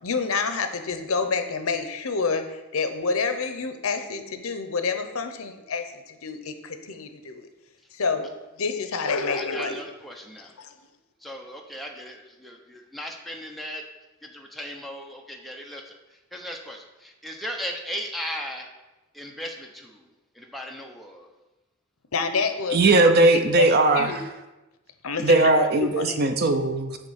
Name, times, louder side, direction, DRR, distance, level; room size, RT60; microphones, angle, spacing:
voice 1, 0.0-7.5 7.9-8.3 8.6-9.8 10.6-10.7 22.1-22.9 23.6-24.2 25.0-25.5 25.8-26.2, left 4 dB, 80° left, 7 dB, 0.7 m, -28 dB
voice 2, 9.3-10.5 11.2-13.8 14.2-18.7 19.1-21.3, equal, ahead, 0 dB, 0.8 m, -37 dB
voice 3, 22.7-24.2 25.2-27.0, right 2 dB, 45° right, 7 dB, 0.6 m, -19 dB
8.3 x 3.1 x 6.4 m, 1.0 s
head